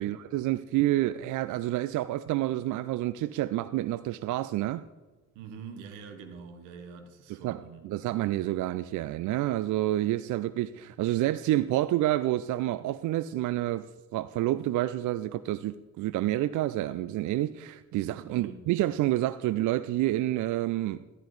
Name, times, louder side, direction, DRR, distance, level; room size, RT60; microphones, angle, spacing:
voice 1, 0.0-4.8 7.3-21.1, right 15 dB, 55° right, 0.5 m, -29 dB
voice 2, 5.3-7.9 18.3-18.6, right 6 dB, 80° right, 1.3 m, -45 dB
14.0 x 12.0 x 3.2 m
hypercardioid pair, 50°, 37 cm